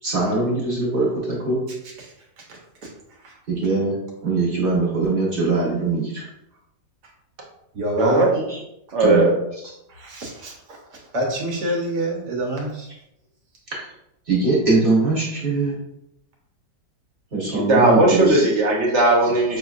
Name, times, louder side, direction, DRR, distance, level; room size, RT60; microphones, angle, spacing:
voice 1, 0.0-1.6 3.5-4.0 4.2-6.3 8.5-8.6 9.0-9.3 13.7-13.8 14.3-15.8 17.3-18.4, right 3 dB, 35° right, -5 dB, 1.2 m, -21 dB
voice 2, 2.0-2.6 3.2-3.3 7.7-8.4 9.9-12.9, equal, 75° right, -1 dB, 1.5 m, -27 dB
voice 3, 8.9-9.4 17.5-19.6, right 2 dB, 55° right, -2 dB, 0.8 m, -17 dB
5.6 x 2.8 x 2.4 m, 0.81 s
omnidirectional pair, 1.8 m